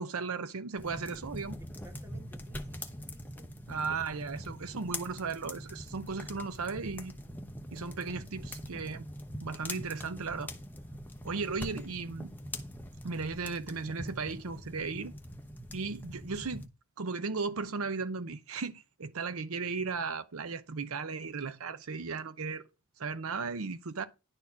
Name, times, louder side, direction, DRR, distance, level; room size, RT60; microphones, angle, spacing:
voice 1, 0.0-1.6 3.7-7.1 7.7-9.1 9.4-10.5 11.2-12.3 13.0-15.1 15.7-16.7 17.0-22.6 23.0-24.1, right 4 dB, 75° right, 0.7 m, -36 dB
sound 1, 0.8-16.7, left 1 dB, 10° left, 0.9 m, -43 dB
voice 2, 1.6-3.5, right 1 dB, 15° right, 1.7 m, -58 dB
11.0 x 4.3 x 5.7 m
head